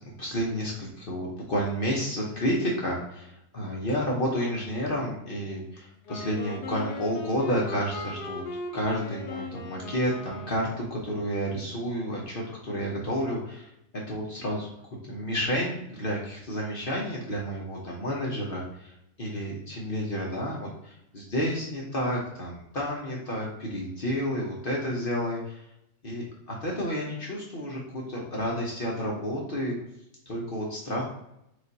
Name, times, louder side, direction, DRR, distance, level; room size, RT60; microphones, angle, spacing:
voice 1, 0.2-8.4 8.7-14.7 15.0-25.7 26.0-29.8 30.3-31.0, equal, 45° left, -3 dB, 0.7 m, -30 dB
Wind instrument woodwind instrument, 6.1-11.1, left 2 dB, 75° left, 1.3 m, -38 dB
4.8 x 2.5 x 4.0 m, 0.80 s
omnidirectional pair, 1.8 m